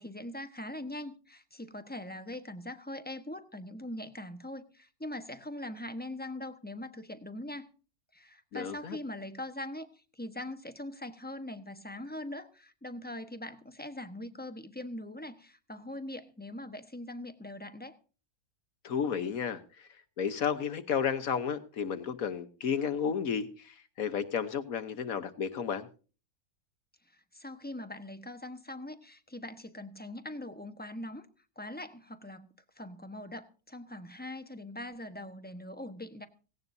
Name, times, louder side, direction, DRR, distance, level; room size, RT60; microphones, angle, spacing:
voice 1, 0.0-7.7 8.1-18.0 27.1-31.3 31.6-32.5 32.8-36.3, left 1 dB, 5° left, 8 dB, 1.0 m, -42 dB
voice 2, 8.5-9.0 18.8-19.9 20.2-25.9, left 7 dB, 70° left, 10 dB, 1.4 m, -32 dB
17.5 x 17.5 x 2.7 m, 0.37 s
omnidirectional pair, 1.6 m